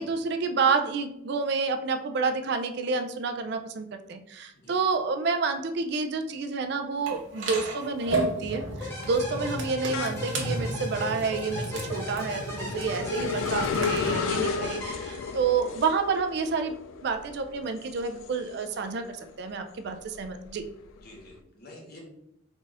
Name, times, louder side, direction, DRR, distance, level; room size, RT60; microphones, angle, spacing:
voice 1, 0.0-20.6, right 4 dB, 55° right, 6 dB, 0.4 m, -29 dB
sound 1, 7.0-7.4 7.8-19.1 19.5-21.2, left 6 dB, 85° left, 0.3 m, -35 dB
sound 2, 7.1-14.1, right 2 dB, 70° right, 0.9 m, -34 dB
sound 3, 8.8-15.7, left 2 dB, 15° left, 1.2 m, -38 dB
voice 2, 20.9-22.0, left 1 dB, 55° left, -2 dB, 1.2 m, -48 dB
3.9 x 3.9 x 2.4 m, 0.79 s
head